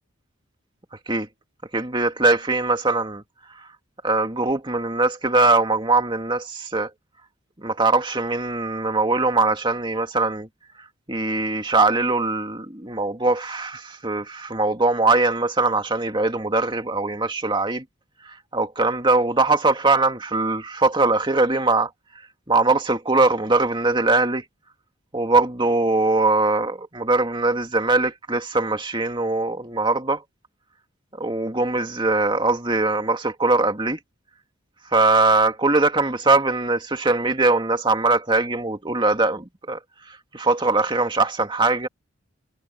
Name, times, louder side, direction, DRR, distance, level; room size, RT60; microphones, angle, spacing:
voice 1, 1.7-3.2 4.0-6.9 7.6-10.5 11.1-17.8 18.5-21.9 22.5-24.4 25.1-30.2 31.2-34.0 34.9-39.8 40.3-41.9, right 3 dB, 25° right, 2.4 m, -21 dB
head